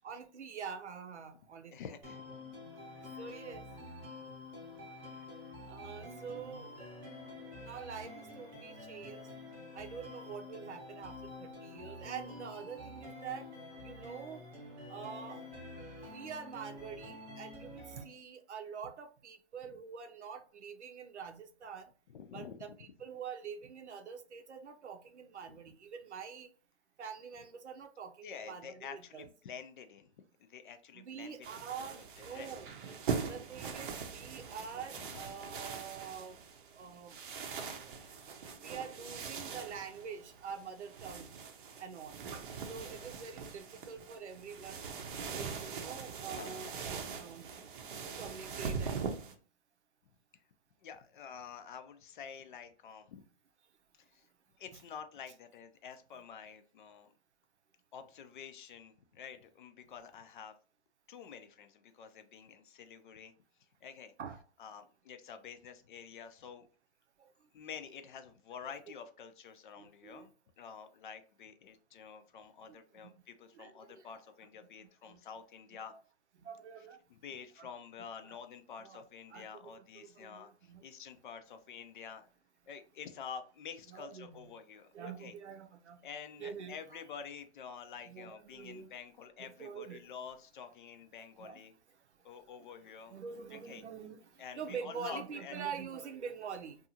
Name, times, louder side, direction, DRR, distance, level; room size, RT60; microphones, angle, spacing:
voice 1, 0.0-1.8 3.2-3.7 5.6-6.7 7.6-9.3 9.7-13.5 13.8-14.4 14.9-15.4 16.0-21.9 22.3-26.5 27.0-29.3 30.9-32.7 33.3-36.4 36.7-37.2 38.6-41.3 41.8-42.2 42.7-44.8 45.3-46.7 47.1-47.5 48.0-49.2 64.2-64.4 67.2-67.3 69.8-70.3 72.7-73.1 73.5-74.1 75.1-75.2 76.4-77.0 77.6-77.7 78.2-78.4 78.8-79.0 79.3-79.7 80.0-80.9 83.9-84.5 84.9-86.0 86.4-87.0 88.1-88.9 89.4-90.0 91.4-91.6 93.1-96.8, right 6 dB, 90° right, 0.7 m, -45 dB
voice 2, 1.7-2.2 2.9-3.2 4.8-5.6 7.4-7.5 22.1-22.6 25.5-25.6 28.2-30.1 30.4-32.5 35.0-35.2 46.3-46.5 50.8-53.2 53.9-54.3 54.6-57.1 57.9-60.5 61.1-63.3 63.8-64.1 64.6-66.7 67.5-70.3 70.6-75.9 77.1-82.3 82.7-85.3 86.0-91.7 92.2-93.1 93.5-93.8 94.4-95.6, left 7 dB, 50° left, 0.5 m, -49 dB
sound 1, 2.0-18.0, left 2 dB, 20° right, 0.8 m, -48 dB
sound 2, 31.4-49.3, right 6 dB, 50° right, 0.6 m, -42 dB
2.7 x 2.4 x 2.7 m
hypercardioid pair, 140°, 33 cm